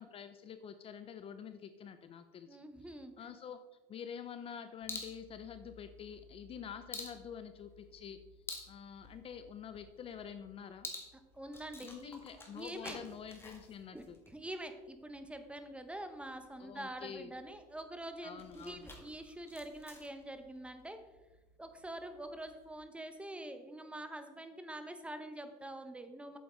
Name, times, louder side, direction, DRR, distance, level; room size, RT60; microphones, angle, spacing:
voice 1, 0.0-3.6 3.9-8.2 8.7-10.9 11.8-14.2 16.6-17.3 18.2-18.9, left 8 dB, 35° left, 10 dB, 0.5 m, -47 dB
voice 2, 2.5-3.1 11.3-12.1 12.5-13.0 13.9-14.0 14.3-21.0 21.6-26.4, right 1 dB, 5° right, 8 dB, 0.9 m, -45 dB
sound 1, 4.8-22.8, left 2 dB, 15° left, 1.7 m, -52 dB
8.5 x 6.9 x 3.8 m, 1.1 s
supercardioid pair, 110°, 18 cm